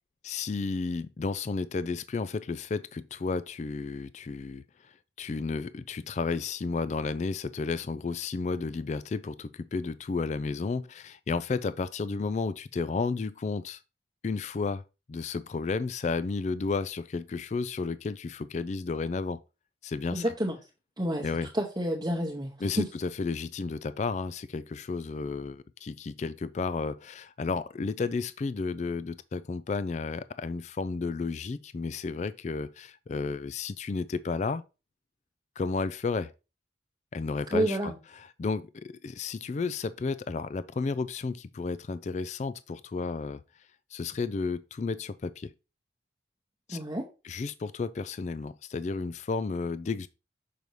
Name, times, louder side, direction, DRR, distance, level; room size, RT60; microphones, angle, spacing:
voice 1, 0.2-4.6 5.2-13.8 14.2-14.8 15.1-19.4 19.8-20.2 21.2-21.5 22.6-34.6 35.6-36.3 37.1-37.9 38.4-43.4 43.9-45.5 46.7-46.8 47.2-50.1, left 4 dB, 40° left, 0.3 m, -32 dB
voice 2, 20.1-20.6 21.0-22.9 37.5-38.0 46.7-47.1, right 1 dB, 20° right, 0.9 m, -29 dB
6.6 x 5.3 x 3.0 m
head